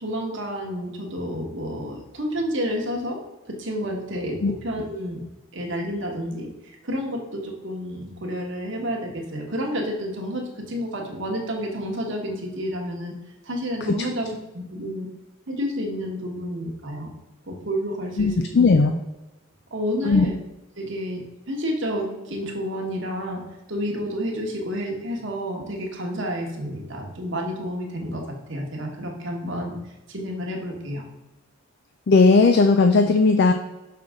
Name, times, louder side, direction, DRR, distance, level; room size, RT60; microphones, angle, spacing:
voice 1, 0.0-3.2 3.4-5.2 5.5-13.1 13.4-15.1 15.5-17.1 17.5-18.3 18.8-18.9 19.7-20.4 20.8-21.2 21.5-23.4 23.7-28.2 28.5-29.7 30.1-31.0, equal, 60° right, 0 dB, 1.4 m, -30 dB
voice 2, 18.2-19.0 20.0-20.3 32.1-33.5, left 3 dB, 50° left, 7 dB, 0.4 m, -17 dB
6.3 x 5.8 x 3.6 m, 1.0 s
head